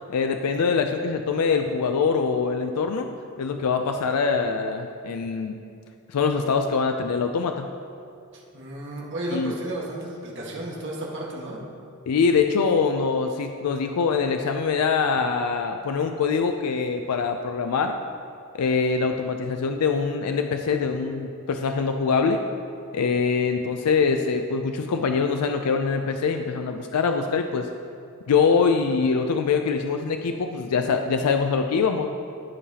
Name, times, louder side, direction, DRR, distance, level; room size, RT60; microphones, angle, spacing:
voice 1, 0.1-3.1 3.4-5.6 6.1-7.7 9.3-9.5 12.1-18.0 18.5-22.4 22.9-27.7 28.3-32.1, left 5 dB, 80° left, 5 dB, 0.4 m, -23 dB
voice 2, 8.3-11.6, right 1 dB, 55° right, -3 dB, 1.6 m, -33 dB
14.5 x 5.6 x 2.8 m, 2.5 s
head